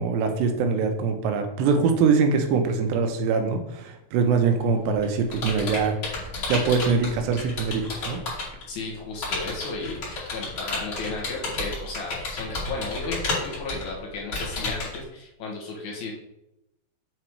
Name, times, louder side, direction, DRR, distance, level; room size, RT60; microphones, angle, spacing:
voice 1, 0.0-6.2 6.5-8.2, right 5 dB, 85° right, 5 dB, 3.0 m, -23 dB
Computer keyboard, 4.6-8.6 9.2-15.0, left 3 dB, 35° left, 2.8 m, -31 dB
voice 2, 8.7-16.1, left 3 dB, 65° left, -1 dB, 2.0 m, -34 dB
7.5 x 4.0 x 4.6 m, 0.86 s
omnidirectional pair, 4.9 m